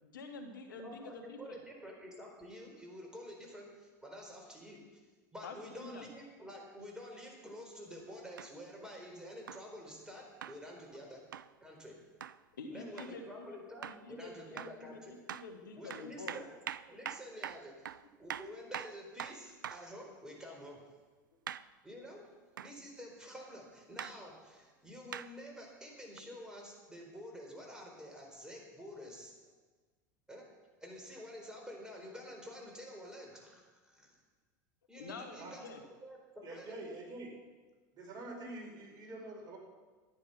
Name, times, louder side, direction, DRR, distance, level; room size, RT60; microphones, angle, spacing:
voice 1, 0.0-1.6 5.4-6.1 10.8-11.0 12.6-13.5 13.8-16.4 21.3-21.4 35.0-35.8, left 3 dB, 85° left, 5 dB, 1.7 m, -47 dB
voice 2, 0.8-5.0 5.3-11.2 11.6-12.0 12.7-15.1 15.8-16.5 16.9-17.9 18.2-20.8 21.8-22.2 22.6-29.3 30.3-30.5 30.8-34.1 34.9-35.6 36.0-36.7, equal, 5° right, 0 dB, 4.3 m, -49 dB
sound 1, 8.4-8.5 9.5-9.7 10.4-10.6 11.3-11.5 12.2-12.4 13.0-13.2 13.8-14.1 14.6-14.8 15.3-15.5 15.9-19.9 21.5-21.7 22.6-22.8 24.0-24.2 25.1-25.3 26.2-26.3, right 9 dB, 85° right, 0.4 m, -43 dB
voice 3, 36.4-37.3 37.9-39.6, right 2 dB, 40° right, 0 dB, 4.5 m, -46 dB
13.0 x 9.8 x 5.9 m, 1.4 s
hypercardioid pair, 90°, 10 cm